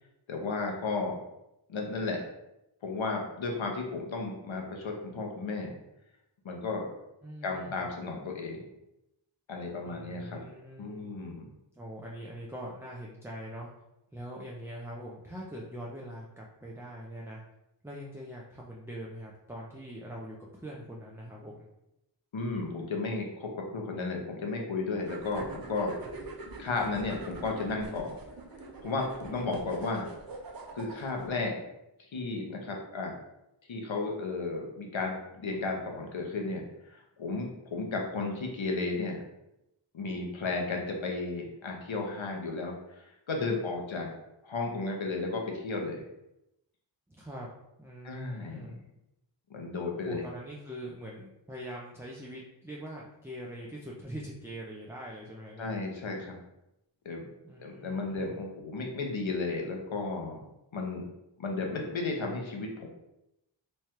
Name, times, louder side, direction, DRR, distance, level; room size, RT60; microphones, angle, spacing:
voice 1, 0.3-1.2 1.7-2.2 2.8-5.7 6.4-6.9 7.4-8.6 9.5-10.4 10.8-11.5 22.3-25.9 26.6-28.2 28.8-30.1 30.7-31.6 32.1-33.1 33.7-39.2 39.9-44.1 44.4-46.0 48.0-48.7 49.5-50.3 55.6-56.4 57.0-57.2 57.6-60.4 60.7-61.0 61.4-62.9, left 3 dB, 85° left, 1 dB, 0.8 m, -34 dB
voice 2, 7.2-7.9 9.8-11.1 11.8-13.7 14.1-17.4 17.8-21.7 47.1-47.5 47.8-48.8 49.9-55.8 57.4-58.4, equal, 5° right, -3 dB, 0.5 m, -43 dB
sound 1, 25.0-31.3, right 3 dB, 50° right, 0.6 m, -44 dB
3.2 x 2.3 x 4.3 m, 0.88 s
wide cardioid pair, 65°, 46 cm